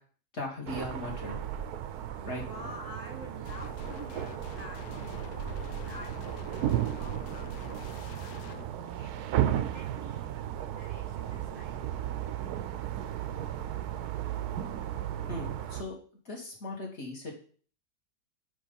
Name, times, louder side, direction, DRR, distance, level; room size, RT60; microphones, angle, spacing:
voice 1, 0.3-1.4 2.3-2.7 15.3-15.9 16.3-17.3, left 2 dB, 45° left, -1 dB, 2.0 m, -38 dB
sound 1, 0.7-15.8, right 11 dB, 90° right, 1.1 m, -34 dB
voice 2, 2.2-7.5 7.9-10.4 10.7-11.8, equal, 30° right, 1 dB, 0.9 m, -49 dB
sound 2, 3.5-8.6, left 9 dB, 75° left, 1.1 m, -46 dB
5.3 x 5.2 x 5.2 m, 0.43 s
omnidirectional pair, 1.6 m